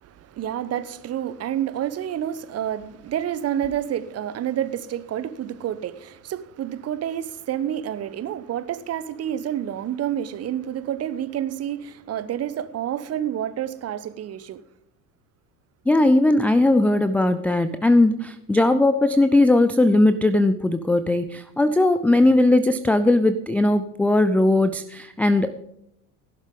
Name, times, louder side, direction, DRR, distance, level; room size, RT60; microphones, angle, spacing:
voice 1, 0.0-14.6, right 10 dB, 30° right, 1.0 m, -29 dB
voice 2, 15.9-25.5, left 2 dB, 5° left, 0.4 m, -19 dB
16.0 x 11.5 x 3.8 m
figure-of-eight pair, 65°, 47 cm